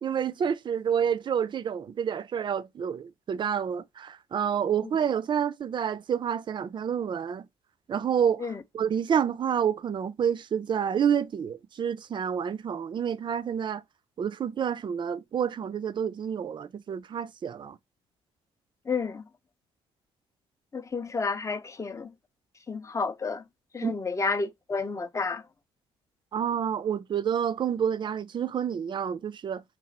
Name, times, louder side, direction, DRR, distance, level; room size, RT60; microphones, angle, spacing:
voice 1, 0.0-7.5 7.9-13.8 14.2-17.8 23.8-24.0 26.3-29.6, right 8 dB, 35° right, 0.4 m, -29 dB
voice 2, 18.9-19.2 20.7-22.1 22.7-23.4 23.7-25.4, left 4 dB, 25° left, 0.5 m, -30 dB
3.0 x 2.4 x 4.0 m
hypercardioid pair, 55°, 13 cm